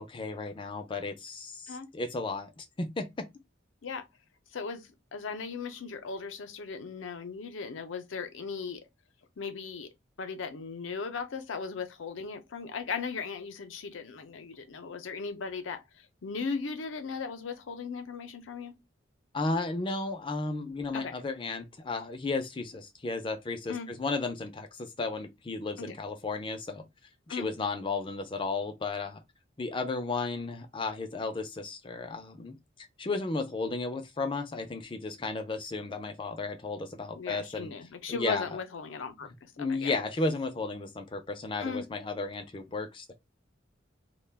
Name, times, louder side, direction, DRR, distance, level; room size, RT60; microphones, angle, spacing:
voice 1, 0.0-3.3 19.3-26.8 27.3-29.2 29.6-32.6 33.0-37.7 38.1-38.4 39.6-43.1, left 3 dB, 25° left, 0.4 m, -34 dB
voice 2, 4.5-8.9 9.4-9.9 10.2-18.8 20.9-21.1 23.7-23.9 25.8-25.9 27.3-27.5 37.1-39.9 41.6-41.9, left 5 dB, 85° left, 0.5 m, -37 dB
2.3 x 2.1 x 3.3 m
head